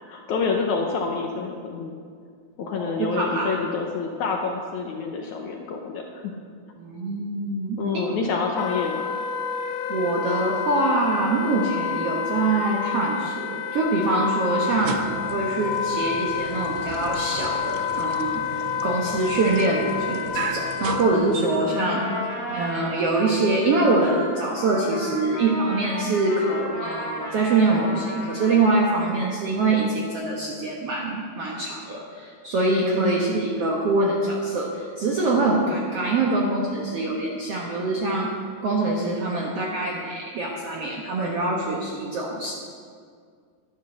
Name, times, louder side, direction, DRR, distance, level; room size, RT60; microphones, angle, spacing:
voice 1, 0.0-2.0 2.6-6.3 7.8-9.2 21.8-22.3 32.9-33.4, left 4 dB, 70° left, 1 dB, 1.9 m, -28 dB
voice 2, 2.6-3.5 6.8-8.1 9.9-22.0 22.5-38.3 38.6-42.5, right 2 dB, 65° right, -2 dB, 1.5 m, -24 dB
Wind instrument woodwind instrument, 8.5-21.2, left 7 dB, 90° left, 2.7 m, -29 dB
sound 1, 14.6-21.9, right 10 dB, 80° right, 2.3 m, -36 dB
Trumpet, 21.4-29.2, equal, 30° left, 0.8 m, -34 dB
10.5 x 10.5 x 6.5 m, 2.1 s
omnidirectional pair, 4.2 m